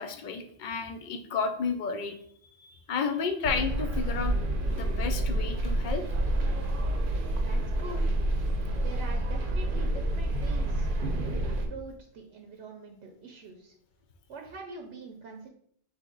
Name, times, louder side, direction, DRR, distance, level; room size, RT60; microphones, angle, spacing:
voice 1, 0.0-2.1 2.6-4.3 4.7-6.0, left 5 dB, 55° left, 7 dB, 0.6 m, -32 dB
sound 1, 3.4-11.7, right 1 dB, 55° right, 0.8 m, -28 dB
voice 2, 7.3-8.1 8.7-13.7 14.3-15.5, right 4 dB, 80° right, 3 dB, 0.9 m, -44 dB
4.2 x 2.8 x 3.8 m, 0.64 s
omnidirectional pair, 1.2 m